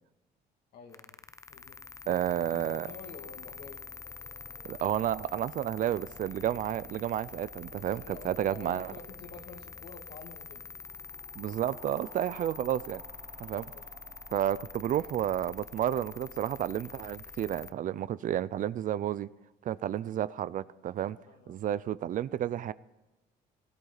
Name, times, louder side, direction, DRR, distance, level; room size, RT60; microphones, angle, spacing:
voice 1, 0.7-1.8 2.0-3.8 7.8-10.6 12.3-12.6 13.5-13.9 21.2-21.6, left 4 dB, 70° left, 2.5 m, -49 dB
sound 1, 0.9-17.7, left 4 dB, 20° left, 0.5 m, -46 dB
voice 2, 2.1-2.9 4.6-8.9 11.4-13.0 13.4-13.7 14.3-19.3 19.6-21.2 21.5-22.7, right 11 dB, 50° right, 0.5 m, -31 dB
sound 2, 2.9-17.0, right 5 dB, 35° right, 1.4 m, -59 dB
17.5 x 16.5 x 4.0 m
cardioid pair, 110°, 17 cm